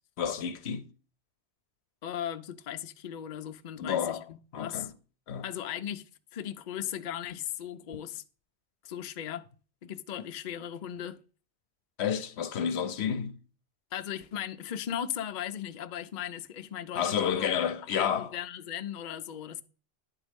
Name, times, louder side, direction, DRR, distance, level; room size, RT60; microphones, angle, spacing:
voice 1, 0.2-0.9 3.8-4.3 4.5-4.9 5.3-5.4 7.9-8.0 12.0-13.4 16.9-18.3, left 8 dB, 70° left, 0.9 m, -30 dB
voice 2, 2.0-4.9 5.4-8.2 8.8-9.5 9.8-11.2 13.9-17.5 17.9-19.6, left 10 dB, 55° left, 0.6 m, -37 dB
10.0 x 4.1 x 5.1 m
omnidirectional pair, 1.2 m